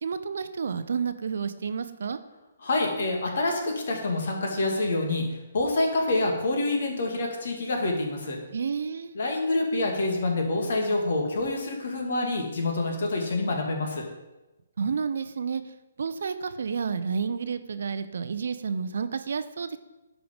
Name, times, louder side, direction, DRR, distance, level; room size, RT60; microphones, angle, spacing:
voice 1, 0.0-2.2 8.5-9.2 14.8-15.6 16.0-19.8, right 6 dB, 65° right, 11 dB, 0.6 m, -30 dB
voice 2, 2.6-5.3 5.5-8.4 9.1-14.0, left 2 dB, 60° left, 2 dB, 2.1 m, -27 dB
11.5 x 4.9 x 5.2 m, 1.1 s
figure-of-eight pair, 135°, 0 cm